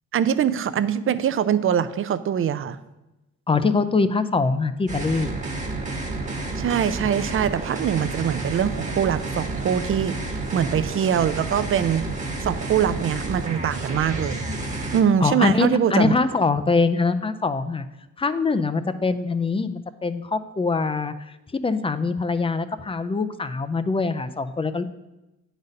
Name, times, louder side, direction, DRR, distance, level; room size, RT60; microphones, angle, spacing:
voice 1, 0.1-2.8 6.6-10.2 10.5-12.1 12.4-14.6 14.9-16.1, right 8 dB, 45° right, 14 dB, 0.5 m, -23 dB
voice 2, 3.5-5.3 15.2-17.8 18.2-21.1 21.5-24.8, left 4 dB, 20° left, 11 dB, 0.4 m, -23 dB
sound 1, 4.9-15.0, right 2 dB, 25° right, 1.3 m, -30 dB
9.4 x 4.1 x 5.2 m, 1.0 s
cardioid pair, 90°, 30 cm